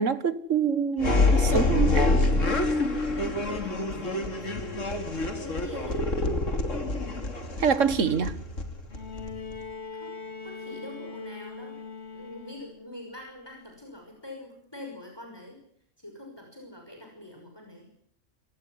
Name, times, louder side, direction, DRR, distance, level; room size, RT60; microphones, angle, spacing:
voice 1, 0.0-2.1 7.6-8.3, right 6 dB, 80° right, 1.9 m, -25 dB
sound 1, 1.0-9.6, left 2 dB, 90° left, 3.3 m, -26 dB
voice 2, 1.4-4.9 5.4-6.0 9.9-10.1 10.4-11.8 12.1-15.6 16.0-17.9, left 1 dB, 20° left, 6.2 m, -44 dB
Bowed string instrument, 8.9-12.9 14.2-14.3, left 5 dB, 60° left, 2.3 m, -41 dB
25.5 x 18.5 x 9.7 m
omnidirectional pair, 1.3 m